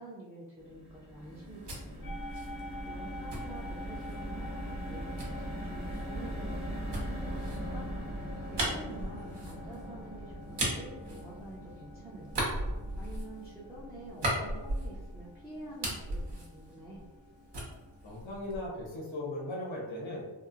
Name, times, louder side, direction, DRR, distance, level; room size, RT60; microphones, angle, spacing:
voice 1, 0.0-2.2 2.8-7.9 8.5-12.5 13.0-17.1, right 1 dB, 5° right, -9 dB, 0.5 m, -48 dB
sound 1, 0.6-16.9 17.3-17.4 17.7-17.9, equal, 35° right, 0.9 m, -42 dB
sound 2, 1.3-4.3 5.2-11.8 12.2-15.3 15.6-17.3 17.5-18.8, right 1 dB, 60° right, 0.8 m, -37 dB
sound 3, 2.0-18.2, equal, 50° left, 0.5 m, -49 dB
voice 2, 18.0-20.2, left 1 dB, 80° left, -4 dB, 0.8 m, -38 dB
2.8 x 2.0 x 2.4 m, 1.2 s
wide cardioid pair, 70°, 46 cm